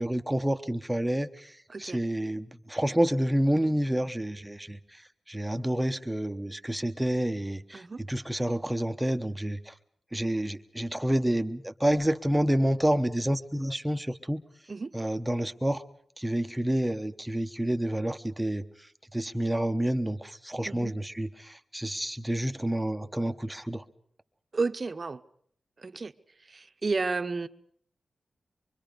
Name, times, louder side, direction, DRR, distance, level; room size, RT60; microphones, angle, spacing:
voice 1, 0.0-5.0 5.3-9.7 10.1-14.4 14.9-15.8 16.2-18.6 19.1-23.8, right 1 dB, 10° right, 1.0 m, -29 dB
voice 2, 24.5-25.2 25.8-26.1 26.5-27.5, right 4 dB, 40° right, 1.0 m, -31 dB
25.0 x 24.0 x 5.2 m
wide cardioid pair, 105°, 0 cm